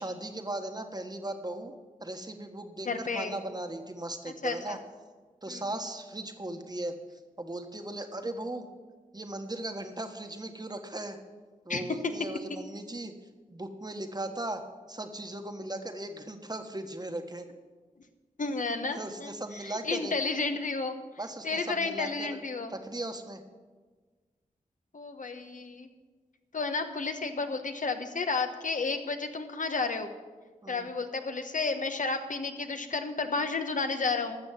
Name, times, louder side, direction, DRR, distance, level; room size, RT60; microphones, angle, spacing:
voice 1, 0.0-1.7 2.0-4.8 5.4-8.7 9.1-11.2 11.6-13.1 13.5-14.6 14.9-17.5 18.9-20.1 21.2-22.4 22.7-23.4 30.6-30.9, right 1 dB, 25° right, 6 dB, 1.4 m, -37 dB
voice 2, 2.8-3.3 4.4-4.8 5.5-5.6 11.7-11.8 18.4-19.3 19.6-21.0 21.4-22.7 24.9-25.9 26.5-30.1 30.7-34.4, left 4 dB, 60° left, 7 dB, 1.2 m, -32 dB
12.5 x 7.1 x 7.4 m, 1.4 s
cardioid pair, 45°, 15 cm